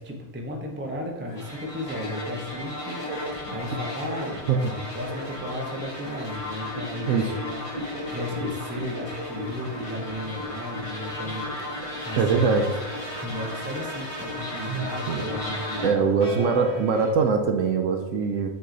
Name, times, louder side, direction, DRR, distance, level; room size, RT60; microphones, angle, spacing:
voice 1, 0.0-12.6 13.2-16.8, left 1 dB, 15° right, 1 dB, 0.3 m, -35 dB
sound 1, 1.3-17.1, left 1 dB, 85° left, 2.1 m, -47 dB
sound 2, 1.4-15.9, left 1 dB, 25° left, 1.1 m, -34 dB
voice 2, 7.1-7.4 12.2-12.7 14.7-15.3 15.8-18.5, right 5 dB, 70° right, 5 dB, 0.8 m, -23 dB
7.7 x 3.1 x 3.9 m, 1.1 s
omnidirectional pair, 1.6 m